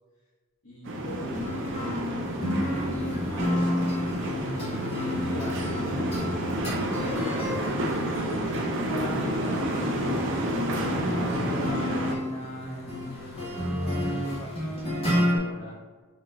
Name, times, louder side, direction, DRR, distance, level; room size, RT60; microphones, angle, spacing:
voice 1, 0.6-2.0 2.5-6.1 6.6-8.5 8.8-15.8, equal, 75° left, -9 dB, 1.2 m, -41 dB
sound 1, 0.9-12.1, right 1 dB, 60° right, 0.6 m, -30 dB
sound 2, 1.3-15.4, left 1 dB, 30° left, 1.4 m, -31 dB
4.4 x 3.2 x 3.7 m, 1.4 s
head